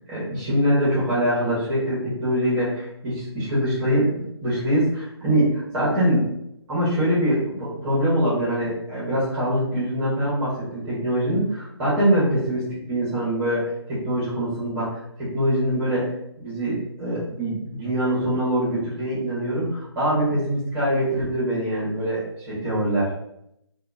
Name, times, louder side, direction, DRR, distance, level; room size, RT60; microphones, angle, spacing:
voice 1, 0.1-6.3 6.7-13.6 13.9-14.9 15.2-16.0 16.4-22.2 22.5-23.1, equal, 15° right, -9 dB, 1.2 m, -23 dB
2.9 x 2.4 x 2.5 m, 0.77 s
figure-of-eight pair, 150°, 15 cm